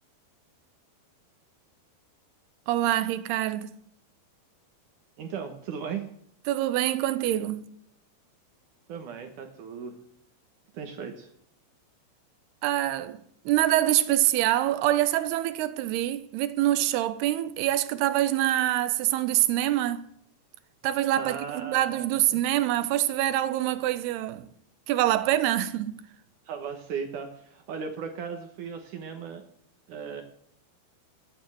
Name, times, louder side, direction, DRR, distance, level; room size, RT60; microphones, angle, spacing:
voice 1, 2.7-3.8 6.5-7.6 12.6-20.1 20.8-24.5 24.9-26.0, right 13 dB, 85° right, 2.8 m, -25 dB
voice 2, 5.2-6.1 8.9-10.0 10.7-11.3 21.2-22.4 26.5-29.4 29.9-30.2, right 6 dB, 65° right, 2.4 m, -37 dB
12.0 x 9.5 x 7.9 m
omnidirectional pair, 4.6 m